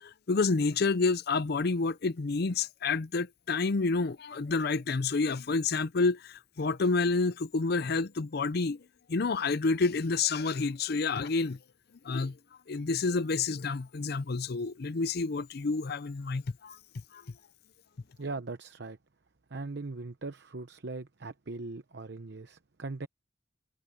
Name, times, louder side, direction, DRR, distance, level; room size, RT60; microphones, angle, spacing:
voice 1, 0.0-8.8 9.1-11.6 12.0-12.3 12.7-16.8 17.1-17.2, left 4 dB, 60° left, 0.6 m, -29 dB
voice 2, 18.2-19.0 19.5-23.1, right 3 dB, 65° right, 0.8 m, -40 dB
head